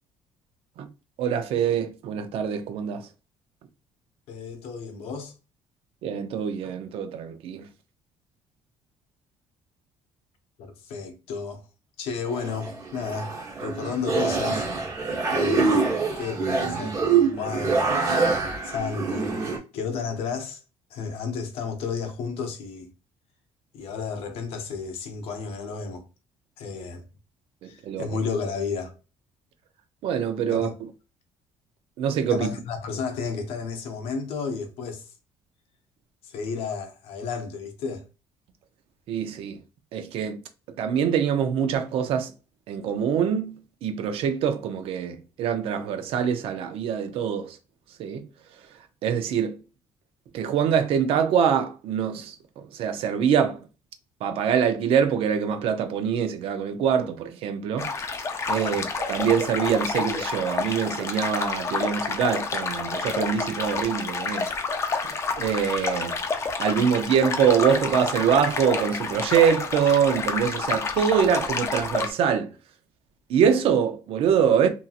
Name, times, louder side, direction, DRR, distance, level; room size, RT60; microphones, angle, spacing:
voice 1, 1.2-3.0 6.0-7.7 27.6-28.1 30.0-30.7 32.0-32.5 39.1-39.6 39.9-40.4 40.8-42.3 42.7-43.5 43.8-47.6 48.0-48.2 49.0-49.6 50.3-53.6 54.2-57.9 58.5-64.5 65.0-65.1 65.4-66.1 66.6-72.5 73.3-74.7, right 7 dB, 70° right, 0.5 m, -24 dB
voice 2, 4.3-5.3 10.6-11.6 12.0-13.3 13.6-14.7 15.3-15.8 16.2-18.2 18.6-20.6 20.9-22.9 23.7-26.1 26.6-27.0 27.6-28.9 30.5-30.7 32.3-35.1 36.2-38.0 58.6-58.9, left 5 dB, 75° left, 0.7 m, -32 dB
sound 1, 12.3-19.6, right 4 dB, 35° right, 1.0 m, -25 dB
sound 2, 57.8-72.1, left 4 dB, 30° left, 0.4 m, -29 dB
2.7 x 2.7 x 2.4 m
cardioid pair, 130°, 10 cm